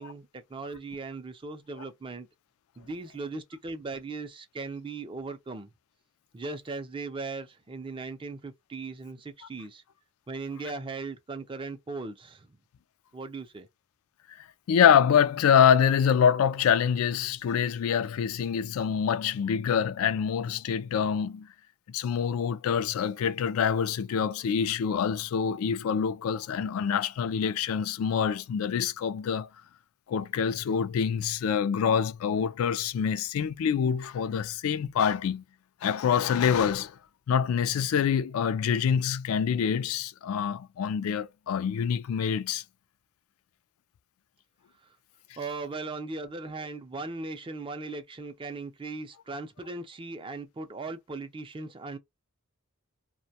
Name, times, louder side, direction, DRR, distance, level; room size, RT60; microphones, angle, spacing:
voice 1, 0.0-2.3 2.8-5.7 6.3-9.8 10.3-12.5 13.1-13.7 45.4-52.0, right 3 dB, 25° right, 0.4 m, -38 dB
voice 2, 14.4-21.5 21.9-29.5 30.1-35.4 35.8-37.0 37.3-42.6, left 7 dB, 75° left, 0.3 m, -26 dB
2.5 x 2.1 x 2.7 m
head